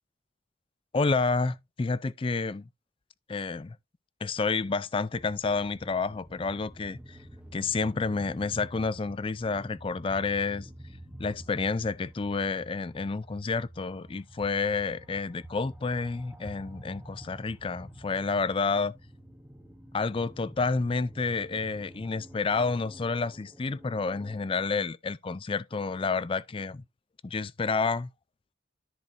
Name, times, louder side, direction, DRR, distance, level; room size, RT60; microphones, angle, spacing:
voice 1, 0.9-2.7 3.3-3.8 4.2-7.2 7.5-10.7 11.2-18.9 19.9-26.8 27.2-28.1, left 4 dB, 25° left, 0.4 m, -29 dB
sound 1, 5.1-24.6, right 1 dB, 5° right, 1.0 m, -49 dB
13.5 x 4.6 x 2.6 m
head